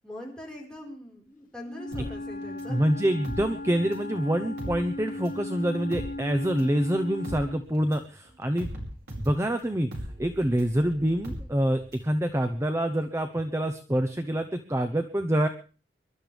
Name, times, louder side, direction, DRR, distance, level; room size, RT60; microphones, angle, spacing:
voice 1, 0.0-2.8, left 1 dB, 5° left, -3 dB, 4.5 m, -42 dB
Wind instrument woodwind instrument, 1.6-7.7, left 2 dB, 50° left, 0.8 m, -37 dB
sound 1, 1.9-4.1 4.4-12.1 12.4-12.5, equal, 60° right, 5.5 m, -39 dB
voice 2, 2.7-8.7 9.2-9.9 10.2-15.5, right 1 dB, 15° right, 8 dB, 0.8 m, -26 dB
25.0 x 12.0 x 3.4 m, 0.36 s
head